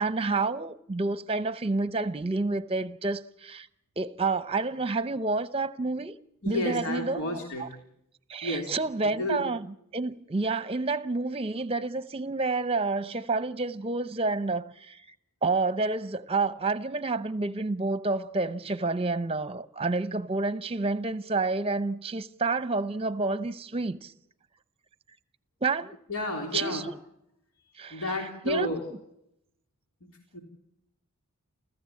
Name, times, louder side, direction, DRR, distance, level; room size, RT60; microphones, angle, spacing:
voice 1, 0.0-3.7 4.0-6.2 6.4-7.2 7.6-7.7 8.3-15.1 15.4-24.1 25.6-26.0 26.5-27.0 27.8-28.1 28.4-28.7, right 3 dB, 25° right, 0.8 m, -29 dB
voice 2, 6.4-7.7 8.4-8.7 9.2-9.4 26.1-26.8 27.9-28.8 30.3-30.4, left 1 dB, 85° left, 3.6 m, -31 dB
29.5 x 14.0 x 8.5 m
head